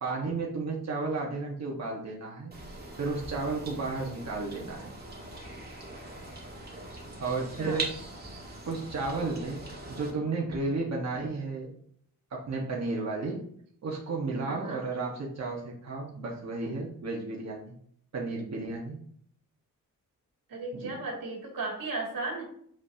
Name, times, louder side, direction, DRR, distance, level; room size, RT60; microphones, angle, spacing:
voice 1, 0.0-2.5 3.0-4.9 7.2-7.9 8.7-9.6 9.9-11.7 12.3-13.4 13.8-17.7 18.1-19.0 20.7-20.9, right 3 dB, 50° right, -2 dB, 1.4 m, -33 dB
sound 1, 2.5-10.1, right 2 dB, 30° right, 1.7 m, -41 dB
voice 2, 7.6-7.9 14.5-14.8 20.5-22.4, right 3 dB, 85° right, -2 dB, 2.5 m, -35 dB
7.0 x 5.5 x 2.8 m, 0.64 s
wide cardioid pair, 155°, 34 cm